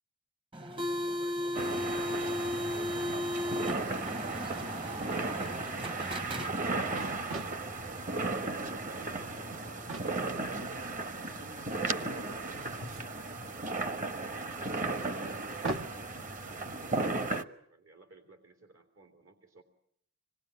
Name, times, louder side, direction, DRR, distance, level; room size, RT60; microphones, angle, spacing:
sound 1, 0.5-7.0, left 1 dB, 25° right, 1.0 m, -36 dB
voice 1, 1.0-2.3 2.7-8.1 8.6-13.7 14.2-19.6, right 3 dB, 70° right, 5 dB, 3.0 m, -56 dB
sound 2, 1.5-17.4, right 3 dB, 40° right, 1.3 m, -35 dB
sound 3, 6.8-7.6 8.8-9.2 9.5-10.1 11.0-11.1 12.5-13.8 14.8-15.9, right 2 dB, 90° right, 2.5 m, -40 dB
26.0 x 20.5 x 9.8 m, 0.68 s
head